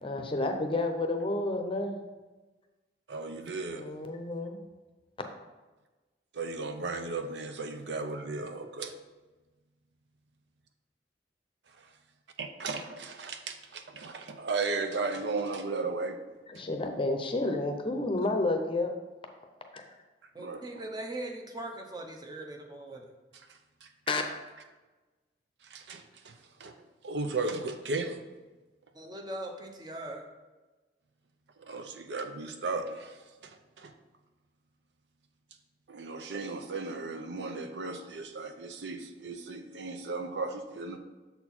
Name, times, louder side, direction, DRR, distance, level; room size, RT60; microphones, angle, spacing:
voice 1, 0.0-1.9 3.7-4.6 16.5-18.9 19.7-19.8 24.1-24.2, left 2 dB, 30° left, 5 dB, 0.6 m, -30 dB
voice 2, 3.1-3.9 6.3-8.9 11.8-11.9 12.4-16.2 20.4-20.6 23.8-23.9 25.6-26.7 27.0-28.2 31.6-33.9 35.9-41.0, right 3 dB, 75° right, 7 dB, 0.6 m, -35 dB
voice 3, 20.3-23.1 28.9-30.2, right 1 dB, 25° right, 2 dB, 0.8 m, -40 dB
6.9 x 4.4 x 4.3 m, 1.2 s
head